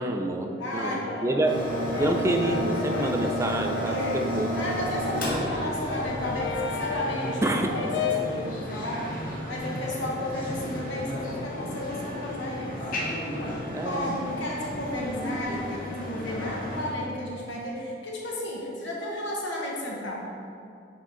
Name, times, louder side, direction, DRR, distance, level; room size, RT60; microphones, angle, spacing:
voice 1, 0.0-1.6 2.0-4.6 5.3-5.4 7.4-7.7 13.7-14.1, right 1 dB, 15° right, 4 dB, 0.4 m, -27 dB
voice 2, 0.6-1.1 3.8-12.8 13.8-20.3, left 1 dB, 90° left, -3 dB, 1.3 m, -33 dB
Brass instrument, 0.7-4.4 4.7-8.4, left 5 dB, 75° left, 0.6 m, -34 dB
sound 1, 1.4-16.9, equal, 50° left, 1.6 m, -33 dB
9.3 x 3.7 x 3.8 m, 2.6 s
head